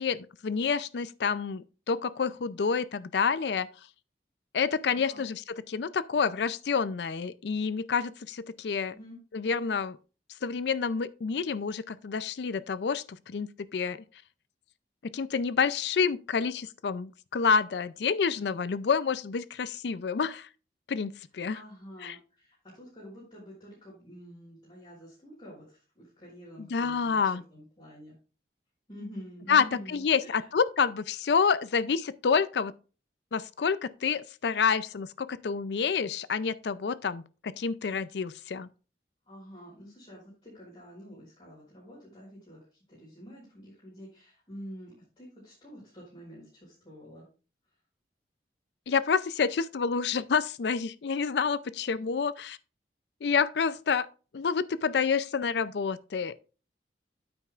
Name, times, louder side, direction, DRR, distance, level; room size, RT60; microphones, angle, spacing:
voice 1, 0.0-3.7 4.5-8.9 9.3-10.0 10.4-14.0 15.1-20.5 20.9-21.6 22.0-22.2 26.6-27.4 29.5-32.7 33.3-38.7 48.9-52.6 53.2-54.1 54.3-56.4, left 5 dB, 70° left, 0.4 m, -28 dB
voice 2, 4.9-5.2 8.9-9.2 21.5-28.1 28.9-30.5 39.3-42.6 42.9-47.2, equal, 35° left, 4.6 m, -48 dB
9.2 x 8.6 x 2.4 m
head